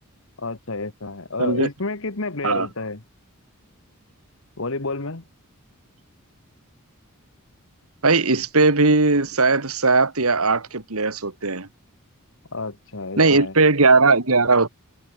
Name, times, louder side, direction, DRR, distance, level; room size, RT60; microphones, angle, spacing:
voice 1, 0.4-3.0 4.6-5.2 12.5-13.5, left 3 dB, 60° left, 1.8 m, -30 dB
voice 2, 8.0-11.7 13.2-14.7, right 3 dB, 75° right, 2.4 m, -18 dB
head